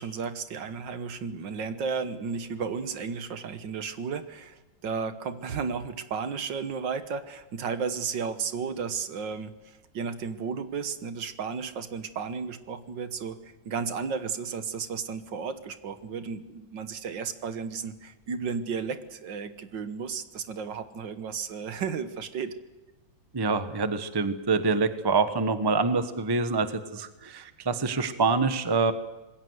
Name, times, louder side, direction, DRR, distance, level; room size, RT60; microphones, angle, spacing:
voice 1, 0.0-22.5, right 6 dB, 70° right, 10 dB, 1.9 m, -33 dB
voice 2, 23.3-28.9, right 4 dB, 15° right, 10 dB, 0.9 m, -26 dB
26.0 x 21.0 x 8.0 m, 1.1 s
omnidirectional pair, 2.1 m